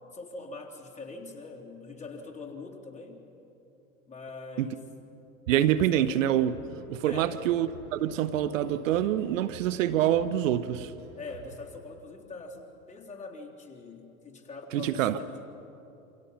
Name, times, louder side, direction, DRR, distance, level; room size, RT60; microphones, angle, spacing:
voice 1, 0.1-3.2 4.1-4.9 5.8-6.1 7.0-7.4 11.1-15.4, left 3 dB, 15° left, -1 dB, 3.8 m, -43 dB
voice 2, 5.5-6.6 6.9-10.9 14.7-15.2, right 11 dB, 65° right, 13 dB, 0.9 m, -26 dB
sound 1, 6.3-11.8, right 4 dB, 85° right, 4.2 m, -49 dB
28.5 x 26.0 x 5.7 m, 2.9 s
hypercardioid pair, 90°, 42 cm